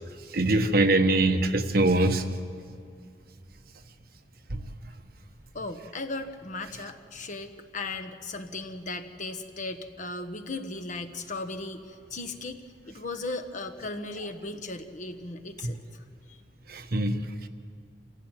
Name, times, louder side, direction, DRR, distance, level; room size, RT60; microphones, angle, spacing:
voice 1, 0.3-2.2 4.5-4.6 16.7-17.2, right 2 dB, 55° right, 6 dB, 1.3 m, -23 dB
voice 2, 5.5-16.4, left 2 dB, 45° left, 7 dB, 1.3 m, -37 dB
27.0 x 16.0 x 9.1 m, 2.3 s
head